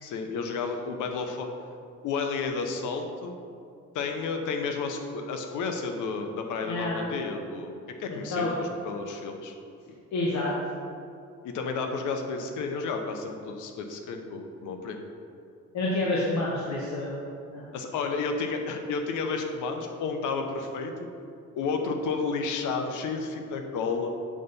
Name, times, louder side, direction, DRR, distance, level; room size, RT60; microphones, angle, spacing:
voice 1, 0.0-1.5 2.0-3.3 3.9-9.5 11.4-15.0 17.7-20.9 21.6-24.1, left 4 dB, 85° left, 5 dB, 0.9 m, -31 dB
voice 2, 6.7-7.0 8.3-8.5 10.1-10.5 15.7-17.2 17.5-17.6, left 2 dB, 65° left, -5 dB, 1.2 m, -28 dB
7.6 x 4.0 x 5.3 m, 2.4 s
cardioid pair, 90°, 30 cm